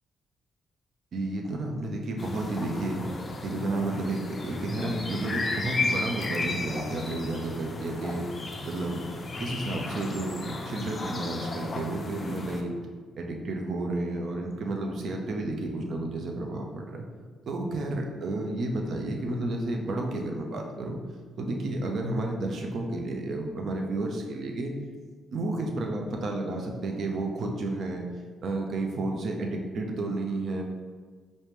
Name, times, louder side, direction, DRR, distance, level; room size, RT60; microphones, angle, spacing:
voice 1, 1.1-3.0 3.4-8.2 8.7-9.0 9.4-12.7 13.2-17.1 17.5-21.0 21.4-24.7 25.3-28.0 28.4-30.6, right 2 dB, 60° right, 2 dB, 0.6 m, -31 dB
sound 1, 2.2-12.6, left 3 dB, 35° left, 0.4 m, -34 dB
4.9 x 2.1 x 3.1 m, 1.5 s
cardioid pair, 90°, 0 cm